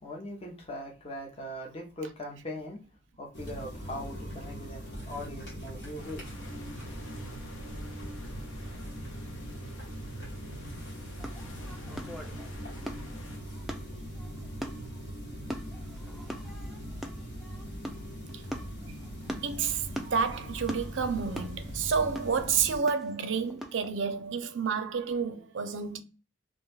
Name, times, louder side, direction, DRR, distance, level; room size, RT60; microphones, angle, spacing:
voice 1, 0.0-2.8 3.2-6.3, left 1 dB, 30° left, 0.6 m, -40 dB
sound 1, 3.3-22.8, equal, 60° left, 1.2 m, -41 dB
sound 2, 6.0-13.4, left 2 dB, 85° left, 0.7 m, -50 dB
sound 3, 11.2-23.9, equal, ahead, 0.3 m, -43 dB
voice 2, 19.4-26.0, right 6 dB, 70° right, 0.5 m, -30 dB
2.6 x 2.2 x 3.2 m
head